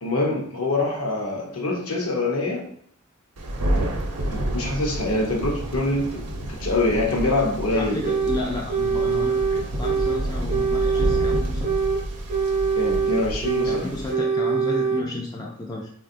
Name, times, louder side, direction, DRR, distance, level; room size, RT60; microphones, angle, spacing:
voice 1, 0.0-2.7 3.7-3.9 4.3-8.0 12.8-13.9, left 2 dB, 65° left, 0 dB, 0.8 m, -25 dB
Thunder, 3.4-14.1, right 1 dB, 80° right, 0.6 m, -29 dB
voice 2, 7.8-11.7 13.7-15.9, left 2 dB, 15° left, -2 dB, 0.3 m, -32 dB
sound 1, 8.0-8.4 8.7-10.2 10.5-12.0 12.3-13.8 14.1-15.0, right 5 dB, 40° right, 0.6 m, -23 dB
3.5 x 2.2 x 2.5 m, 0.62 s
head